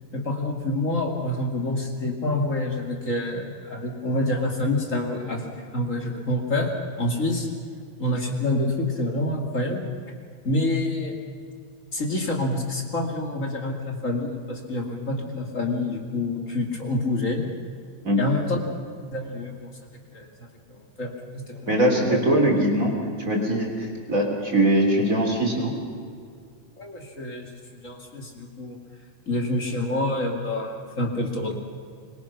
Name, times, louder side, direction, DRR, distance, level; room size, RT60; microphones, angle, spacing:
voice 1, 0.1-7.5 8.0-9.9 10.4-11.2 11.9-17.5 18.2-18.6 19.1-19.7 20.1-22.2 26.8-28.8 29.3-31.5, left 2 dB, 25° left, 2 dB, 2.2 m, -27 dB
voice 2, 21.7-22.9 23.3-25.7, right 1 dB, 25° right, 1 dB, 3.2 m, -21 dB
25.5 x 22.5 x 5.9 m, 2.3 s
omnidirectional pair, 3.8 m